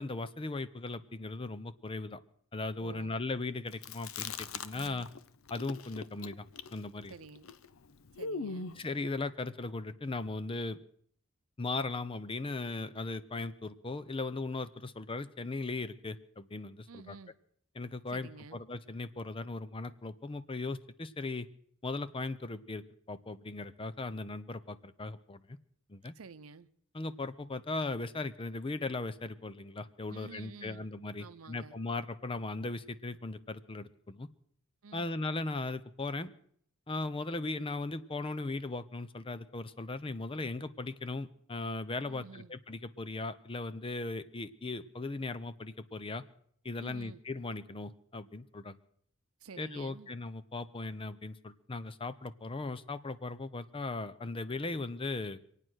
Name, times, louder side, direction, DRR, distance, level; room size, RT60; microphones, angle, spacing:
voice 1, 0.0-2.2 2.5-5.1 5.5-6.5 6.7-7.1 8.8-10.8 11.6-17.2 17.8-21.5 21.8-25.6 25.9-26.1 26.9-34.3 34.9-36.3 36.9-46.2 46.6-48.7 49.6-55.4, left 3 dB, 25° left, 0.7 m, -38 dB
voice 2, 2.8-3.2 4.7-5.1 7.1-7.5 8.1-8.7 16.9-17.3 18.1-18.6 26.0-26.7 30.1-30.9 31.2-31.8 34.8-35.1 42.0-42.6 46.8-47.2 49.4-50.1, right 4 dB, 85° right, 0.7 m, -50 dB
Chewing mastication, 3.7-5.2 5.5-8.9, left 4 dB, 70° left, 0.7 m, -41 dB
25.0 x 9.1 x 6.3 m
head